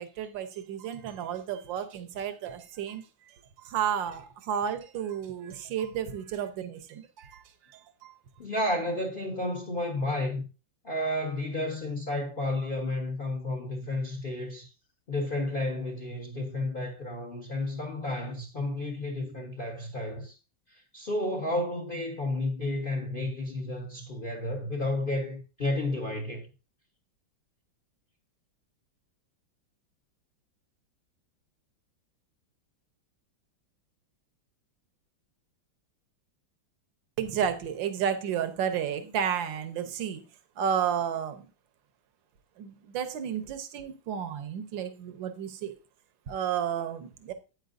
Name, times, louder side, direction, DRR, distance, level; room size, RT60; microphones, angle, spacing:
voice 1, 0.0-8.1 37.2-40.2 40.6-41.5 42.6-45.8 46.3-47.3, right 8 dB, 70° right, 1.7 m, -32 dB
voice 2, 8.4-10.5 10.8-14.7 15.1-20.4 20.7-26.4, left 1 dB, 30° left, 1.1 m, -32 dB
9.1 x 8.9 x 2.6 m
omnidirectional pair, 2.2 m